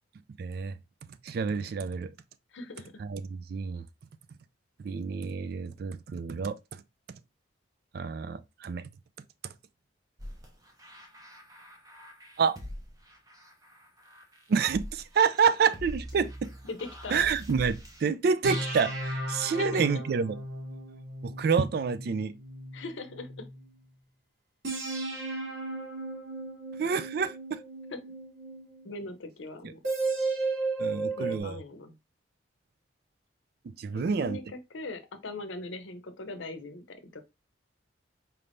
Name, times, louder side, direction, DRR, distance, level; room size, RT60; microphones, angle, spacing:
voice 1, 0.4-0.8 1.2-2.1 3.0-3.8 4.8-6.6 7.9-8.9 12.4-12.6 14.5-16.5 17.1-20.4 21.2-22.3 26.8-27.6 30.8-31.6 33.6-34.4, right 6 dB, 50° right, 0.3 m, -28 dB
voice 2, 2.5-3.0 16.7-17.3 19.6-20.0 22.7-23.4 27.9-28.0 28.8-29.8 31.2-31.9 33.9-37.2, left 2 dB, 75° left, 0.7 m, -40 dB
sound 1, 10.2-18.0, left 1 dB, 20° right, 0.6 m, -45 dB
sound 2, 15.8-17.8 18.4-23.6 24.6-28.9 29.8-31.4, right 2 dB, 85° right, 2.0 m, -35 dB
4.4 x 3.4 x 2.5 m
head